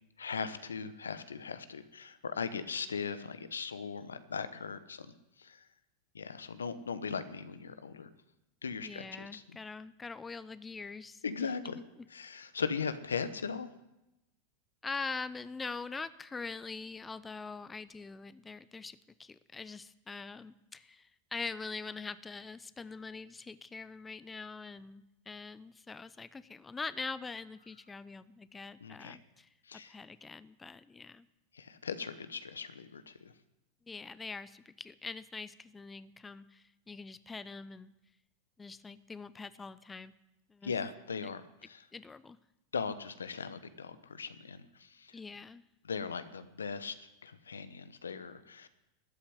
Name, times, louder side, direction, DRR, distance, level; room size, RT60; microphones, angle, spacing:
voice 1, 0.2-5.1 5.4-5.6 6.1-8.1 8.6-9.6 11.2-11.8 12.1-13.7 28.8-29.2 29.7-29.9 31.5-33.3 40.6-41.9 42.7-45.1 45.8-48.7, left 5 dB, 85° left, 12 dB, 1.0 m, -39 dB
voice 2, 8.8-11.5 11.7-11.8 14.8-29.5 29.9-31.3 33.9-37.9 38.6-40.1 40.5-40.7 41.2-41.3 41.9-42.4 45.1-45.6, left 4 dB, 15° left, 15 dB, 0.6 m, -43 dB
13.5 x 8.6 x 9.4 m, 0.91 s
hypercardioid pair, 90°, 0 cm